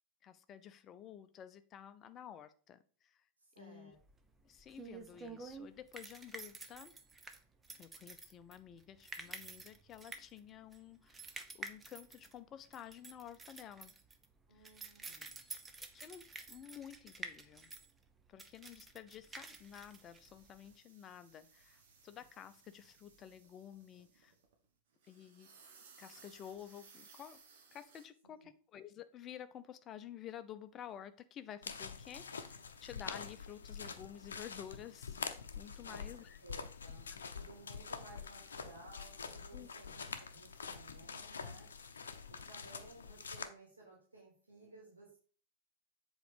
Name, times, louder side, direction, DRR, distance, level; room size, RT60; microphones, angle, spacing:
voice 1, 0.2-3.2 3.6-3.9 4.4-6.9 7.8-13.9 14.5-14.9 15.9-16.2 16.5-17.7 18.3-24.3 25.1-25.5 26.0-27.4 27.7-36.4 37.1-37.2 39.5-39.7, left 10 dB, 30° left, 11 dB, 0.7 m, -52 dB
voice 2, 3.5-3.9 14.5-15.5 35.8-36.0 36.4-37.1 37.3-41.7 42.3-45.2, right 2 dB, 75° right, -2 dB, 2.6 m, -57 dB
sound 1, 4.0-20.7, right 3 dB, 15° right, 0.9 m, -50 dB
sound 2, 19.4-24.7 24.9-28.1, right 5 dB, 55° right, 1.5 m, -63 dB
sound 3, 31.6-43.5, left 5 dB, 70° left, 0.7 m, -46 dB
7.7 x 4.1 x 5.0 m, 0.42 s
figure-of-eight pair, 90°, 0 cm